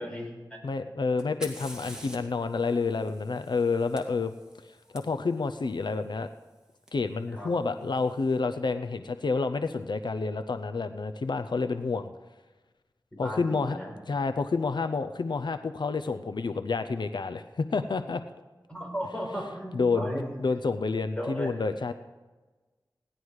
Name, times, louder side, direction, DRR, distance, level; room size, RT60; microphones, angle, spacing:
voice 1, 0.0-0.6 7.3-7.5 13.1-13.9 18.7-20.6 21.1-21.5, equal, 15° left, -1 dB, 4.8 m, -36 dB
voice 2, 0.6-6.3 6.9-12.1 13.2-13.8 14.1-18.2 19.7-20.1 20.4-21.9, left 4 dB, 80° left, 9 dB, 0.6 m, -29 dB
Fire, 1.2-5.0 6.9-7.0 7.8-8.2, equal, 10° right, 2.4 m, -46 dB
18.0 x 11.0 x 4.8 m, 1.2 s
wide cardioid pair, 70°, 8 cm